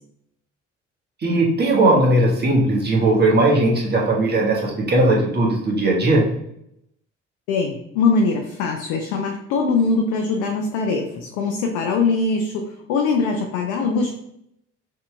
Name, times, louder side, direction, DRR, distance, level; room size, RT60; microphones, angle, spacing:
voice 1, 1.2-6.3, right 2 dB, 30° right, -2 dB, 1.3 m, -18 dB
voice 2, 7.5-14.2, left 4 dB, 60° left, 2 dB, 0.6 m, -22 dB
6.0 x 2.8 x 2.3 m, 0.76 s
figure-of-eight pair, 45°, 36 cm